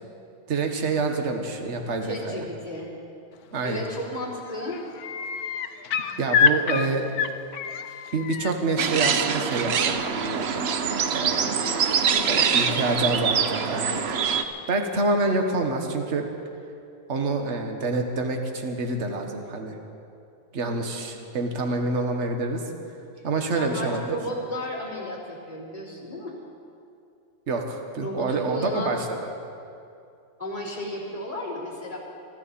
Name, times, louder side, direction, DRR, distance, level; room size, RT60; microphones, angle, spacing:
voice 1, 0.5-2.4 3.5-3.8 6.2-7.1 8.1-9.9 10.2-10.7 11.1-11.5 12.3-14.0 14.7-16.3 17.1-19.7 20.5-22.6 23.2-24.2 27.5-29.3, right 3 dB, 40° right, 4 dB, 1.5 m, -27 dB
voice 2, 2.0-2.9 3.6-4.8 12.1-12.7 23.2-26.3 28.0-29.0 30.4-32.0, left 1 dB, 20° left, -5 dB, 3.6 m, -34 dB
sound 1, 3.8-4.2 4.5-8.5 10.2-10.3, left 6 dB, 65° left, 0.9 m, -26 dB
sound 2, 8.8-14.4, right 6 dB, 90° right, 0.5 m, -24 dB
24.5 x 13.5 x 4.2 m, 2.6 s
omnidirectional pair, 2.1 m